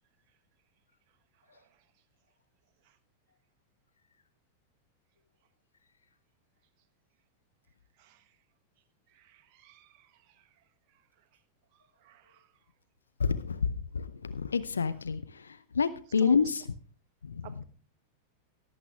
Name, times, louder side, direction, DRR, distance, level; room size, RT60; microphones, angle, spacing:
voice 1, 1.5-1.8 2.8-3.0 8.0-8.4 9.1-10.6 10.9-11.0 11.7-12.5 16.2-16.3 17.4-17.6, right 12 dB, 45° right, 7 dB, 1.4 m, -54 dB
voice 2, 13.2-16.6 17.2-17.6, left 5 dB, 75° left, 12 dB, 0.7 m, -29 dB
17.5 x 8.4 x 3.5 m, 0.41 s
figure-of-eight pair, 90°, 0 cm